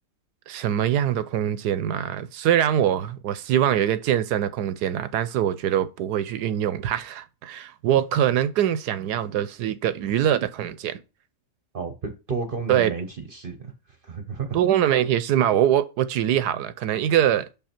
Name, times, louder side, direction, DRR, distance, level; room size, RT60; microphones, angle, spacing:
voice 1, 0.5-11.0 12.7-12.9 14.5-17.5, right 10 dB, 75° right, 1.1 m, -23 dB
voice 2, 11.7-13.7 14.0-14.6, right 4 dB, 40° right, 0.8 m, -32 dB
6.6 x 5.6 x 4.4 m
omnidirectional pair, 1.9 m